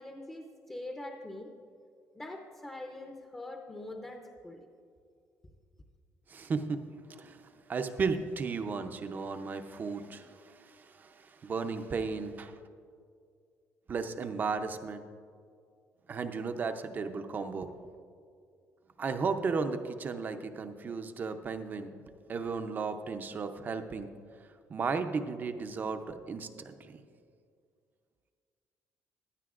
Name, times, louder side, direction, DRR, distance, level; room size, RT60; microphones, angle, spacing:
voice 1, 0.0-1.5 2.1-4.7, left 1 dB, 15° left, 2 dB, 0.7 m, -43 dB
voice 2, 6.3-6.8 7.1-7.4 7.7-12.6 13.9-15.0 16.1-17.7 19.0-21.9 22.3-24.1 24.7-27.0, right 4 dB, 35° right, 8 dB, 0.6 m, -34 dB
15.5 x 11.5 x 2.5 m, 2.3 s
cardioid pair, 140°, 6 cm